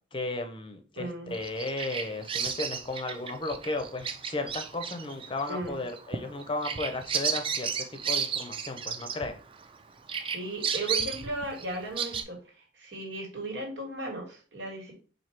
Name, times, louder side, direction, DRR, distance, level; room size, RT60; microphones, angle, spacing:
voice 1, 0.1-9.4, left 2 dB, 30° left, 7 dB, 0.5 m, -35 dB
voice 2, 1.0-1.3 5.5-5.8 10.3-14.9, right 1 dB, 85° right, 0 dB, 1.8 m, -36 dB
Bird vocalization bird call bird song, 1.3-9.8 10.1-12.2, right 6 dB, 30° right, 0.4 m, -33 dB
4.5 x 2.7 x 4.4 m, 0.38 s
head